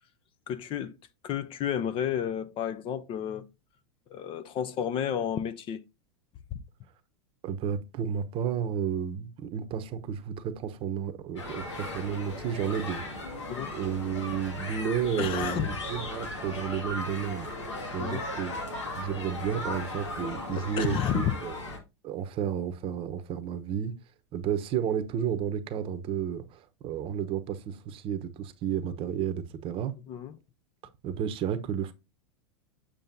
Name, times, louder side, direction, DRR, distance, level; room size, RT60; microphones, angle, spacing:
voice 1, 0.5-0.9 1.2-3.4 4.1-5.8 6.5-6.6 13.5-13.8 15.2-15.7 18.0-18.2 20.6-21.3 30.1-30.4, left 9 dB, 35° left, 0.7 m, -31 dB
voice 2, 7.4-13.3 13.7-17.5 17.9-18.6 19.0-21.5 22.0-23.9 24.3-29.9 31.0-31.9, right 8 dB, 40° right, 0.9 m, -32 dB
sound 1, 11.4-21.8, left 2 dB, 90° left, 2.1 m, -37 dB
7.6 x 6.6 x 2.7 m
hypercardioid pair, 105°, 15 cm